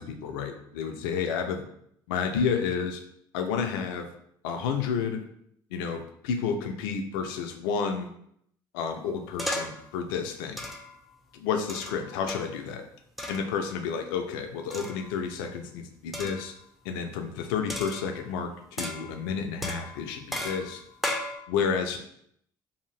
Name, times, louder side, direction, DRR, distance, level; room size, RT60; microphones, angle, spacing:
voice 1, 0.0-1.6 2.1-3.0 3.3-4.1 4.4-5.2 5.7-8.1 8.7-10.6 11.3-12.8 13.3-16.5 16.8-20.8 21.5-22.0, left 6 dB, 80° left, 5 dB, 0.4 m, -30 dB
sound 1, 9.4-9.9 10.6-11.0 11.7-12.6 13.2-13.5 14.7-15.2 16.1-16.5 17.7-18.4 18.8-19.3 19.6-21.4, left 1 dB, ahead, 0.5 m, -35 dB
2.7 x 2.5 x 3.0 m, 0.71 s
hypercardioid pair, 60°, 11 cm